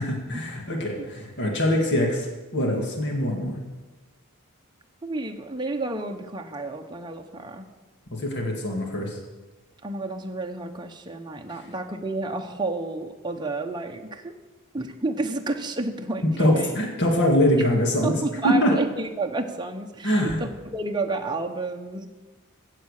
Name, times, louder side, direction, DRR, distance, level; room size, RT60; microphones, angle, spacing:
voice 1, 0.0-3.6 8.1-9.2 16.4-18.2 18.4-18.7 20.0-20.4, equal, 50° left, 0 dB, 2.1 m, -23 dB
voice 2, 5.0-7.7 9.8-14.3 14.7-16.7 17.6-17.7 18.0-22.1, right 2 dB, 20° right, 3 dB, 0.9 m, -30 dB
15.5 x 7.5 x 6.6 m, 1.2 s
head